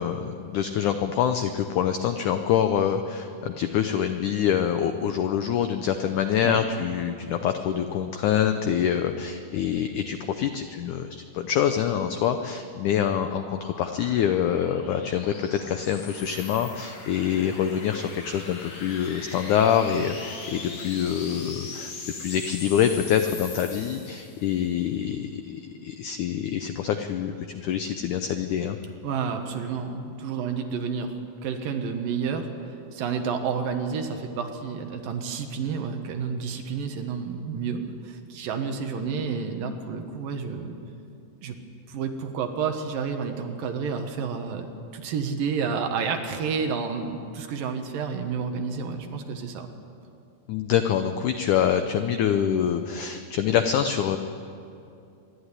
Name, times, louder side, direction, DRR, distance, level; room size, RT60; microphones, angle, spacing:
voice 1, 0.0-21.9 22.2-28.8 50.5-54.2, left 9 dB, 80° left, 7 dB, 1.8 m, -25 dB
sound 1, 12.5-24.5, left 4 dB, 55° left, 3.8 m, -41 dB
voice 2, 29.0-31.1 31.4-40.8 41.4-41.5 41.9-44.7 44.9-49.7, right 6 dB, 70° right, 5 dB, 2.8 m, -30 dB
26.0 x 11.5 x 9.8 m, 2.7 s
omnidirectional pair, 4.5 m